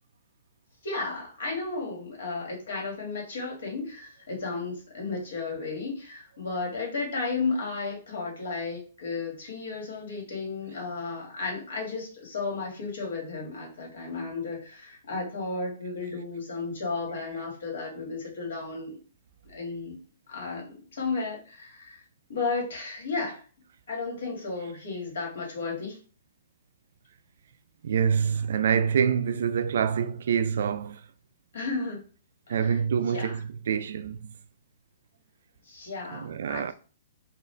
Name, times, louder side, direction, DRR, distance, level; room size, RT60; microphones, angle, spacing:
voice 1, 0.8-19.0 19.4-20.0 20.3-22.0 22.3-23.4 23.9-26.0 31.5-32.0 32.5-33.4 35.6-36.7, left 3 dB, 75° left, 1.7 m, -33 dB
voice 2, 27.8-31.0 32.5-33.4 33.7-34.3 36.1-36.7, right 7 dB, 65° right, 0.3 m, -26 dB
3.8 x 2.4 x 3.3 m
hypercardioid pair, 160°, 0 cm